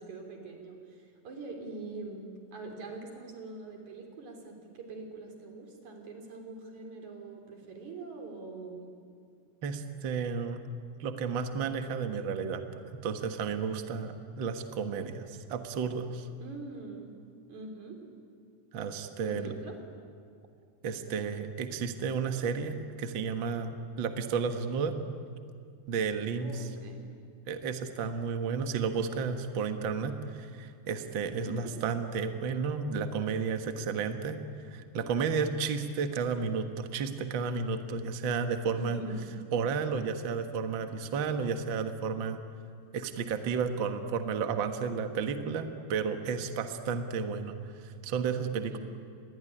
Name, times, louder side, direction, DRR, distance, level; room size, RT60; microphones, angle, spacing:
voice 1, 0.0-8.9 16.4-17.1 17.5-18.0 19.2-19.8 26.4-27.0 31.4-31.8 38.7-39.3 48.7-48.8, right 2 dB, 50° right, 3 dB, 4.7 m, -43 dB
voice 2, 9.6-10.6 11.0-12.6 13.0-16.3 18.7-19.5 20.8-25.0 25.9-26.6 27.5-34.4 34.7-39.0 39.5-42.4 42.9-47.5 47.8-48.8, right 5 dB, 85° right, 7 dB, 1.0 m, -32 dB
27.0 x 21.0 x 10.0 m, 2.3 s
omnidirectional pair, 4.5 m